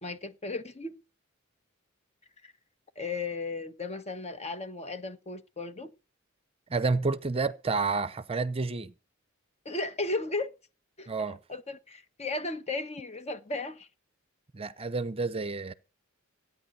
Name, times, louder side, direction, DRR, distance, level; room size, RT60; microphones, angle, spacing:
voice 1, 0.0-1.0 2.4-2.5 3.0-5.9 9.6-10.5 11.0-11.1 11.5-13.9, left 3 dB, 30° left, 1.2 m, -35 dB
voice 2, 6.7-8.9 11.1-11.4 14.5-15.7, right 4 dB, 30° right, 0.7 m, -30 dB
16.0 x 9.6 x 6.7 m
head